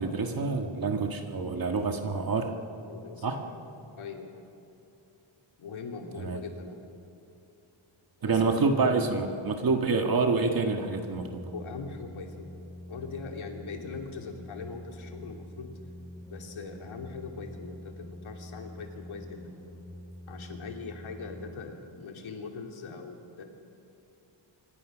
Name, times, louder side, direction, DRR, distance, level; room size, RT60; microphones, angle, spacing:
voice 1, 0.0-2.5 3.2-3.4 6.2-6.4 8.2-11.4, right 4 dB, 45° right, 4 dB, 1.7 m, -27 dB
voice 2, 1.7-2.1 2.9-3.6 4.0-4.4 5.6-6.9 8.3-8.5 11.5-12.5 12.9-15.8 16.3-19.5 20.3-23.4, left 5 dB, 75° left, 3 dB, 3.0 m, -41 dB
sound 1, 10.9-21.5, left 1 dB, 5° left, 6.9 m, -45 dB
26.5 x 24.5 x 6.3 m, 2.8 s
wide cardioid pair, 165°, 49 cm